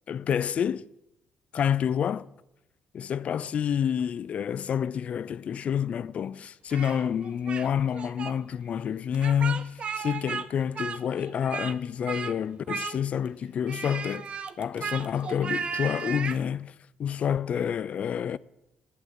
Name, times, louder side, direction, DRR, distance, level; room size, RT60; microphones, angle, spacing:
voice 1, 0.1-0.9 1.5-2.3 2.9-16.7 17.0-18.4, left 8 dB, 45° left, 0.4 m, -28 dB
Speech, 6.7-7.7 7.9-8.3 9.1-10.5 10.7-11.8 12.1-12.3 12.7-13.3 13.7-16.4, right 6 dB, 40° right, 0.8 m, -35 dB
11.0 x 9.0 x 9.5 m
cardioid pair, 130°, 3 cm